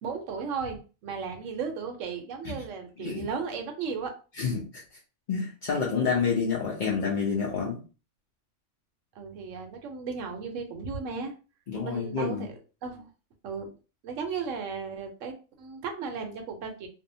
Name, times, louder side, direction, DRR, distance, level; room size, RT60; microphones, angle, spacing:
voice 1, 0.0-4.2 9.2-11.3 11.8-12.5 12.8-13.0 13.4-13.7 14.0-16.9, right 5 dB, 70° right, 4 dB, 0.9 m, -35 dB
voice 2, 4.4-4.8 5.3-7.8 11.7-12.5, left 5 dB, 60° left, -3 dB, 0.5 m, -28 dB
2.6 x 2.0 x 2.6 m, 0.34 s
omnidirectional pair, 1.5 m